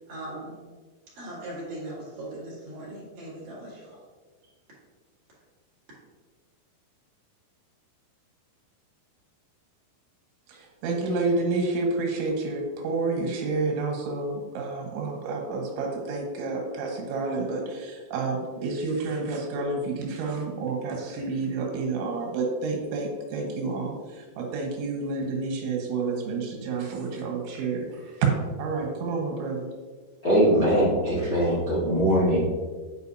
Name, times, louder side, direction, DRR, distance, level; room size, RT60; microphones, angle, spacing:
voice 1, 0.1-0.5 1.1-4.0, right 1 dB, 45° right, -7 dB, 3.0 m, -39 dB
voice 2, 10.8-28.3 28.6-29.7, right 3 dB, 85° right, 0 dB, 3.6 m, -29 dB
voice 3, 30.2-32.4, equal, 35° left, -9 dB, 1.6 m, -21 dB
9.0 x 4.8 x 2.8 m, 1.4 s
omnidirectional pair, 5.2 m